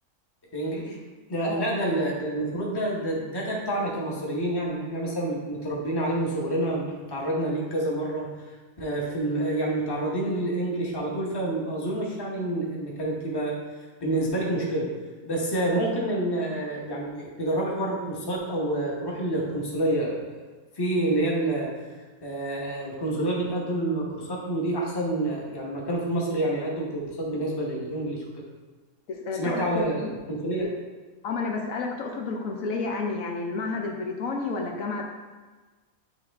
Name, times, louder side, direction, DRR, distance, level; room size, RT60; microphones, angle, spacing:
voice 1, 0.5-1.0 1.3-8.3 8.8-13.6 14.0-14.9 15.3-20.5 20.8-21.7 22.2-28.4 29.4-30.7, right 1 dB, 20° left, -3 dB, 1.0 m, -28 dB
voice 2, 29.1-30.1 30.6-30.7 31.2-35.0, left 4 dB, 70° left, 1 dB, 1.0 m, -31 dB
9.4 x 3.2 x 3.5 m, 1.3 s
omnidirectional pair, 1.6 m